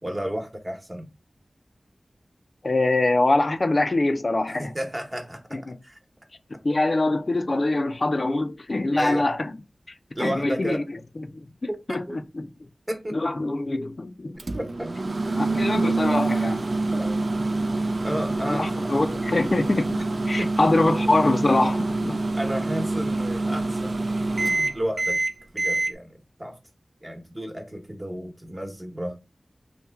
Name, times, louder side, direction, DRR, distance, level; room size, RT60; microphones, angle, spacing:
voice 1, 0.0-1.1 4.5-5.4 5.8-6.0 9.0-9.3 10.1-10.8 11.7-12.2 12.9-13.2 14.5-14.9 16.9-17.2 18.0-18.9 20.0-20.1 20.4-20.5 22.3-24.0 24.7-25.2 25.5-26.6 27.0-29.2, equal, 25° right, 1.0 m, -32 dB
voice 2, 2.6-4.7 5.5-5.8 6.6-9.5 10.2-10.8 11.6-12.5 13.1-14.4 15.3-16.6 18.4-22.2, left 2 dB, 55° left, 0.4 m, -24 dB
Microwave oven, 14.4-25.9, right 2 dB, 60° right, 0.4 m, -26 dB
3.0 x 2.2 x 3.4 m
wide cardioid pair, 50°, 0 cm